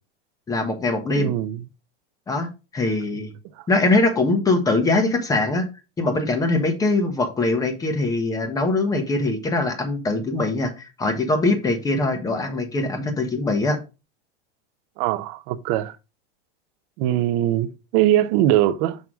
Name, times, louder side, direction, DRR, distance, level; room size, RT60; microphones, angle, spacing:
voice 1, 0.5-1.3 2.3-3.3 3.7-5.7 6.0-13.8, left 2 dB, 10° left, 1.1 m, -22 dB
voice 2, 1.1-1.6 15.0-16.0 17.0-19.0, right 13 dB, 30° right, 0.5 m, -21 dB
6.3 x 3.4 x 6.0 m
supercardioid pair, 155°, 32 cm